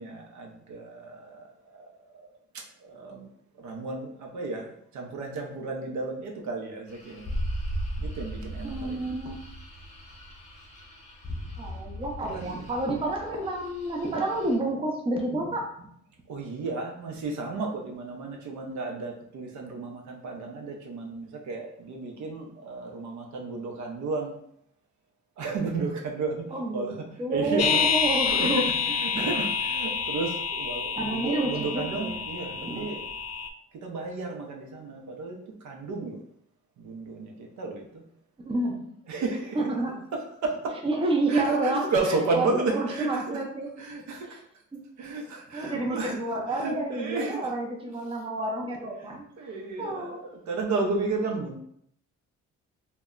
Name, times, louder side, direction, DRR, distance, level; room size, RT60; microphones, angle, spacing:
voice 1, 0.0-2.3 2.5-3.3 3.5-7.3 8.0-9.0 12.3-12.7 16.3-24.4 25.4-27.9 28.3-33.0 33.8-36.2 36.8-38.0 39.1-39.7 40.1-40.8 41.3-43.4 43.8-44.4 45.0-47.5 47.9-48.1 49.0-51.6, right 3 dB, 70° right, 1 dB, 0.6 m, -33 dB
sound 1, 6.9-14.6, equal, 25° left, 0.7 m, -37 dB
voice 2, 8.6-9.4 11.6-15.9 26.5-28.6 29.1-29.4 30.9-32.2 32.5-33.0 38.4-38.8 39.5-40.0 40.8-41.9 42.3-43.7 44.3-44.4 44.7-44.8 45.5-49.2 49.8-50.2, right 2 dB, 20° right, 1 dB, 0.5 m, -29 dB
sound 2, 27.6-33.5, left 6 dB, 60° left, 0.4 m, -28 dB
2.1 x 2.1 x 3.6 m, 0.70 s
cardioid pair, 90°, 30 cm